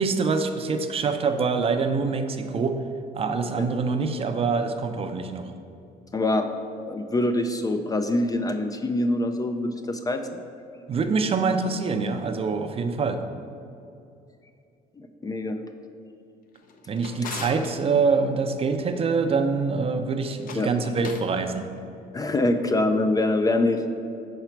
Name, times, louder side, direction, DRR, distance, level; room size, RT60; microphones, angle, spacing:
voice 1, 0.0-2.8 3.1-5.5 10.9-13.2 16.9-21.7, right 4 dB, 35° right, 7 dB, 0.5 m, -25 dB
voice 2, 6.1-6.5 6.9-10.4 15.2-15.6 20.5-20.7 22.1-23.8, left 2 dB, 20° left, 7 dB, 0.4 m, -24 dB
Drawer open or close, 16.5-17.7 20.3-21.3, left 4 dB, 55° left, 0.7 m, -39 dB
4.9 x 4.5 x 5.8 m, 2.5 s
cardioid pair, 110°, 17 cm